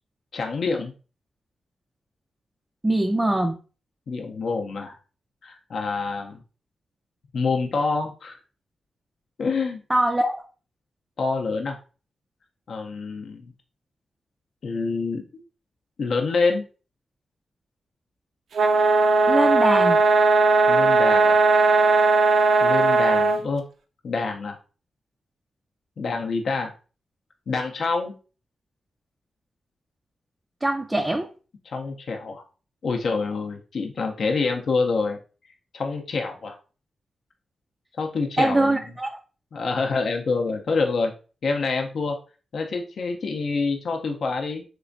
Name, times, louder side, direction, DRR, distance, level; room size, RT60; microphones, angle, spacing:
voice 1, 0.3-0.9 4.1-5.0 5.4-6.4 7.3-8.4 9.4-9.8 11.2-11.8 12.7-13.5 14.6-15.4 16.0-16.6 20.7-21.4 22.6-23.6 24.0-24.6 26.0-26.7 27.5-28.1 31.7-32.4 32.8-35.2 35.7-36.6 38.0-38.7 39.5-41.1 41.4-42.2 42.5-44.6, left 4 dB, 65° left, 0.5 m, -26 dB
voice 2, 2.8-3.5 9.9-10.4 19.3-20.0 30.6-31.3 38.4-39.2, right 1 dB, 15° right, 0.3 m, -22 dB
sound 1, 18.5-23.4, right 3 dB, 75° right, 0.5 m, -18 dB
3.3 x 3.0 x 2.5 m
cardioid pair, 90°, 0 cm